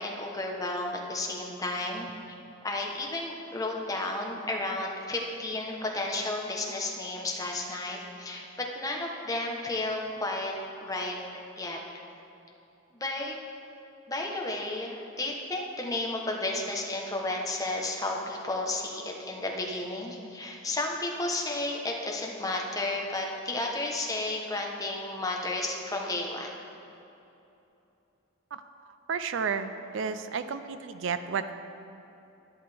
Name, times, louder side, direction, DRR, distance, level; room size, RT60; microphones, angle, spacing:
voice 1, 0.0-2.4 2.6-10.5 10.8-11.8 12.9-13.4 14.1-26.5, left 2 dB, 15° left, 0 dB, 0.9 m, -32 dB
voice 2, 29.1-31.5, right 6 dB, 65° right, 10 dB, 0.4 m, -32 dB
11.0 x 11.0 x 3.4 m, 2.9 s
head